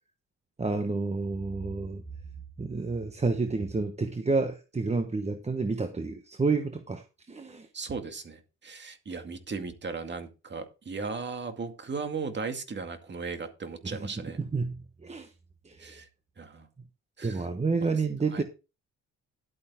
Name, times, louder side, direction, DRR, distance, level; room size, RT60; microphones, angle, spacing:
voice 1, 0.6-2.0 2.6-7.7 13.8-14.1 14.5-15.3 15.6-16.0 17.2-18.4, right 3 dB, 20° right, 1.1 m, -30 dB
voice 2, 7.7-14.4 15.8-16.1 16.4-16.7 17.2-17.5 17.8-17.9 18.3-18.4, right 4 dB, 35° right, 2.2 m, -37 dB
11.5 x 8.6 x 3.6 m
cardioid pair, 90°, 30 cm